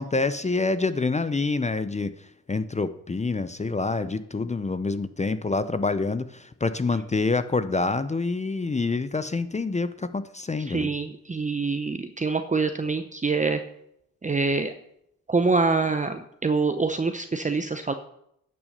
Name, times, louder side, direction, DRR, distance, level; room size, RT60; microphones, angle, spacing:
voice 1, 0.0-10.9, left 3 dB, 20° left, 13 dB, 0.6 m, -27 dB
voice 2, 10.7-13.6 14.2-14.7 15.3-17.9, right 4 dB, 25° right, 8 dB, 0.7 m, -25 dB
10.5 x 6.1 x 6.6 m, 0.75 s
cardioid pair, 70°, 33 cm